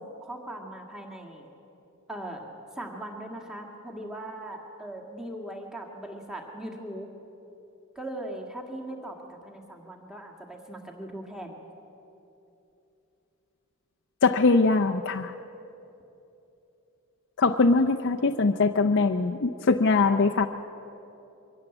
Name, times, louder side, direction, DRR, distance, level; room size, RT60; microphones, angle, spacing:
voice 1, 0.0-1.5 2.1-2.5 2.8-7.1 8.0-11.7, right 1 dB, 5° right, 0 dB, 2.0 m, -39 dB
voice 2, 14.2-15.3 17.4-20.5, left 3 dB, 55° left, 5 dB, 0.6 m, -22 dB
23.5 x 16.5 x 8.0 m, 3.0 s
head